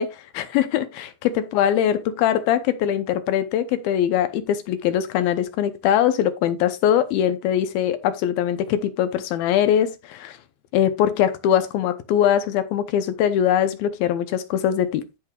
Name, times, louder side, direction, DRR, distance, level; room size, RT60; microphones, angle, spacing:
voice 1, 0.0-10.4 10.7-15.0, left 10 dB, 75° left, 2.5 m, -22 dB
15.0 x 5.3 x 2.3 m
omnidirectional pair, 4.5 m